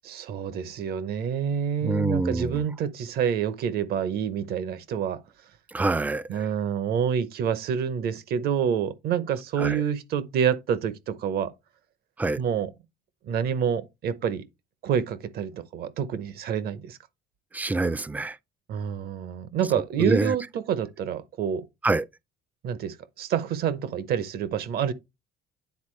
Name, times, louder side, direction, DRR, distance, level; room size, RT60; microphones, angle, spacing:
voice 1, 0.0-5.2 6.3-11.5 12.4-12.7 13.2-14.4 14.8-17.0 18.7-21.7 22.6-24.9, right 8 dB, 65° right, 0.8 m, -27 dB
voice 2, 1.8-2.6 5.7-6.4 9.6-9.8 12.2-12.4 17.5-18.4 20.0-20.4 21.8-22.1, right 3 dB, 10° right, 0.3 m, -26 dB
9.5 x 3.9 x 3.2 m
cardioid pair, 110°, 17 cm